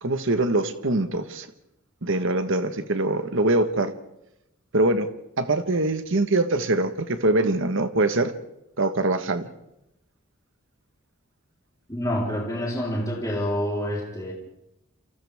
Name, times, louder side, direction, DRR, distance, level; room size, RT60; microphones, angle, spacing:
voice 1, 0.0-1.5 2.0-3.9 4.7-5.1 5.4-8.3 8.8-9.5, right 2 dB, 65° right, 8 dB, 1.4 m, -23 dB
voice 2, 11.9-14.3, equal, 15° left, -3 dB, 4.0 m, -27 dB
30.0 x 28.0 x 3.6 m, 0.86 s
head